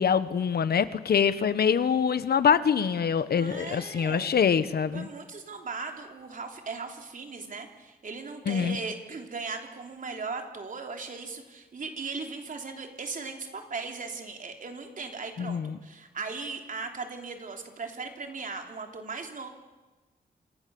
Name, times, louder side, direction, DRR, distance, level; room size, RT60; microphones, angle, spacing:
voice 1, 0.0-5.1 8.5-8.8 15.4-15.8, left 7 dB, 80° left, 13 dB, 1.3 m, -24 dB
voice 2, 3.3-4.3 4.9-19.5, right 4 dB, 55° right, 4 dB, 3.4 m, -38 dB
27.5 x 27.5 x 7.1 m, 1.2 s
wide cardioid pair, 130°, 16 cm